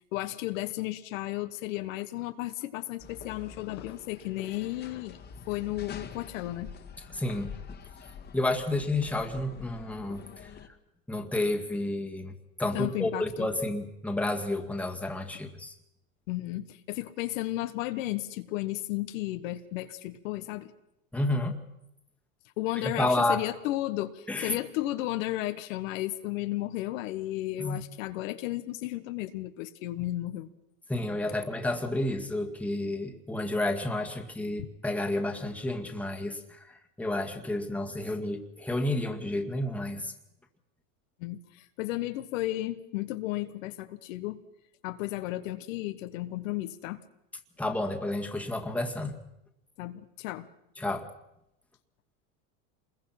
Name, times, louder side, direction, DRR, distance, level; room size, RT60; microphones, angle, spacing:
voice 1, 0.1-5.2 5.5-6.7 12.7-13.5 16.3-20.7 22.6-30.5 34.6-34.7 41.2-44.4 44.8-47.0 49.8-50.5, left 16 dB, 70° left, 9 dB, 1.4 m, -34 dB
sound 1, 3.0-10.7, left 6 dB, 25° left, 1.9 m, -46 dB
voice 2, 7.1-7.5 8.3-10.5 11.1-12.3 12.6-15.7 21.1-21.5 22.7-23.4 24.3-24.6 27.6-27.8 30.9-40.1 47.6-49.2 50.8-51.1, left 2 dB, 5° left, 3 dB, 1.9 m, -30 dB
26.5 x 21.5 x 5.9 m, 0.85 s
supercardioid pair, 135°, 40 cm